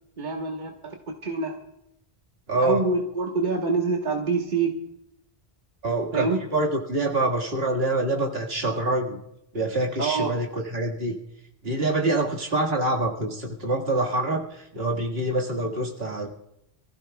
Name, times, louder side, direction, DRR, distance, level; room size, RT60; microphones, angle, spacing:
voice 1, 0.2-1.6 2.6-4.8 6.1-6.4 10.0-10.3, right 4 dB, 50° right, 0 dB, 1.4 m, -26 dB
voice 2, 2.5-2.8 5.8-9.2 9.5-11.2 11.6-16.3, right 2 dB, 65° right, 0 dB, 2.1 m, -26 dB
26.5 x 15.0 x 2.3 m, 0.81 s
omnidirectional pair, 1.1 m